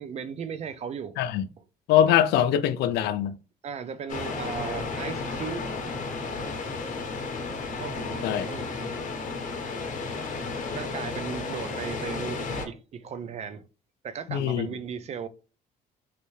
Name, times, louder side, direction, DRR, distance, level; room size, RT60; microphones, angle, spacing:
voice 1, 0.0-1.1 3.6-5.7 7.8-8.7 10.8-13.6 14.0-15.3, right 7 dB, 40° right, 0.5 m, -36 dB
voice 2, 1.9-3.4 8.2-8.5 14.3-14.7, left 10 dB, 75° left, 0.4 m, -22 dB
sound 1, 4.1-12.7, left 4 dB, 50° left, 0.8 m, -33 dB
3.3 x 2.6 x 3.1 m
cardioid pair, 110°, 17 cm